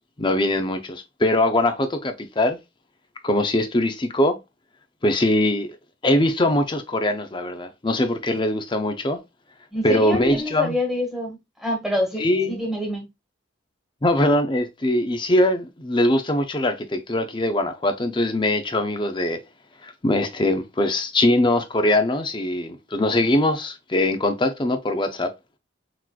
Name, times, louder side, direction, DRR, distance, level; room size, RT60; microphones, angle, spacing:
voice 1, 0.2-2.6 3.2-4.4 5.0-5.7 6.0-9.2 9.8-10.8 12.2-12.6 14.0-19.4 19.8-25.3, left 1 dB, 25° left, 0.6 m, -22 dB
voice 2, 9.7-13.1, equal, ahead, 1.5 m, -27 dB
5.9 x 3.1 x 2.4 m
head